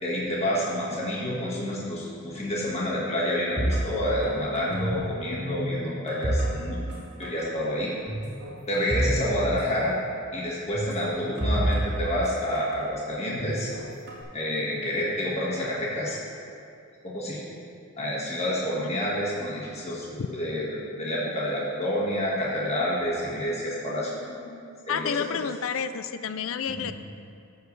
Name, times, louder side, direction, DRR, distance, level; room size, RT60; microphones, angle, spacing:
voice 1, 0.0-7.9 8.7-10.0 10.3-13.7 14.3-16.2 17.0-17.4 18.0-24.6 24.9-25.3 26.7-26.8, equal, 30° left, -6 dB, 1.6 m, -29 dB
sound 1, 3.6-5.1 5.4-7.0 7.2-7.5 8.1-9.2 9.4-9.5 10.7-12.8 13.4-14.2, right 1 dB, 55° right, 2.7 m, -29 dB
voice 2, 24.9-26.9, left 7 dB, 60° left, 11 dB, 0.4 m, -30 dB
13.5 x 8.0 x 3.2 m, 2.5 s
head